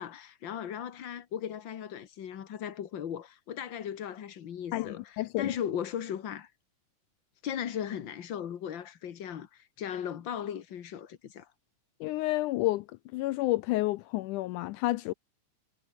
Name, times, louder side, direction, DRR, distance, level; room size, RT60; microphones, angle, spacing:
voice 1, 0.0-6.5 7.4-11.5, left 9 dB, 55° left, 1.4 m, -37 dB
voice 2, 4.7-5.5 12.0-12.9 13.1-15.1, left 18 dB, 80° left, 2.0 m, -30 dB
omnidirectional pair, 3.8 m